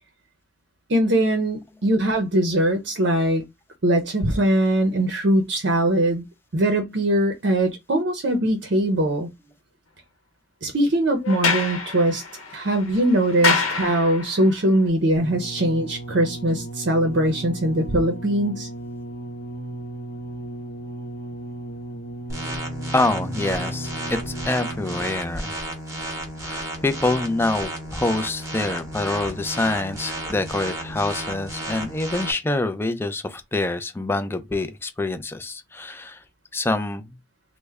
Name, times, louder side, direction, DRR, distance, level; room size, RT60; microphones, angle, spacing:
voice 1, 0.9-3.4 3.8-6.2 6.5-9.3 10.6-12.2 12.5-18.7, right 1 dB, 55° right, 0.6 m, -21 dB
Sliding door, 11.2-14.5, left 4 dB, 90° left, 0.8 m, -26 dB
sound 1, 15.2-25.3 26.1-26.2, right 1 dB, 45° left, 0.6 m, -35 dB
sound 2, 22.3-32.3, right 1 dB, 15° right, 0.8 m, -33 dB
voice 2, 22.9-25.5 26.4-36.2 36.5-37.2, left 2 dB, 10° left, 0.3 m, -26 dB
3.2 x 2.1 x 3.4 m
head